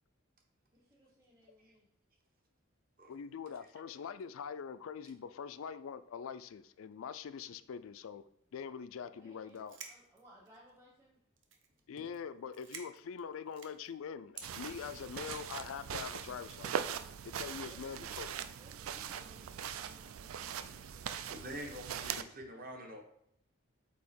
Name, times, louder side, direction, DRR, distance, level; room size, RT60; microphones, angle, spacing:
voice 1, 0.7-1.9 9.1-11.2 17.4-18.1 18.5-20.8, right 1 dB, 15° right, -4 dB, 0.8 m, -62 dB
voice 2, 3.1-8.2 8.5-9.8 11.9-16.8 17.2-18.4 22.0-22.2, left 7 dB, 75° left, 14 dB, 0.3 m, -44 dB
sound 1, 9.5-10.8 11.4-11.8 12.1-12.2 12.5-13.9 14.3-14.5 15.3-15.6, right 6 dB, 60° right, 0.8 m, -50 dB
sound 2, 14.4-22.2, right 8 dB, 80° right, 0.4 m, -41 dB
voice 3, 21.1-23.0, equal, 45° right, 1 dB, 1.0 m, -46 dB
8.2 x 2.8 x 4.3 m, 0.72 s
head